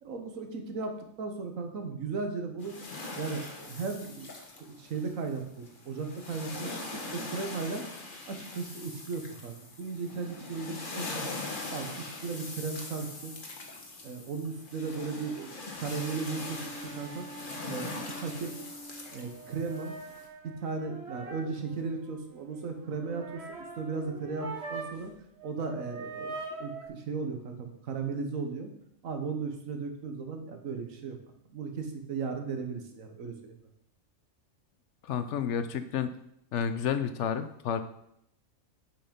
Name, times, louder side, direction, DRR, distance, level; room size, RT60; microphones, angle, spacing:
voice 1, 0.0-2.7 3.2-4.3 4.6-6.7 7.1-7.8 8.3-11.3 11.7-13.3 14.0-15.5 15.7-17.3 17.7-18.6 19.1-19.9 20.4-25.1 25.4-26.3 26.6-28.7 29.0-31.2 31.5-33.6 35.7-35.8, right 4 dB, 85° right, 5 dB, 1.5 m, -36 dB
sound 1, 2.6-20.3, left 3 dB, 40° left, 1.3 m, -42 dB
sound 2, 16.2-25.1 25.4-26.9, right 3 dB, 55° right, 1.4 m, -44 dB
voice 2, 35.0-36.1 36.5-37.8, left 8 dB, 70° left, 10 dB, 0.8 m, -30 dB
7.6 x 5.9 x 5.2 m, 0.76 s
omnidirectional pair, 1.4 m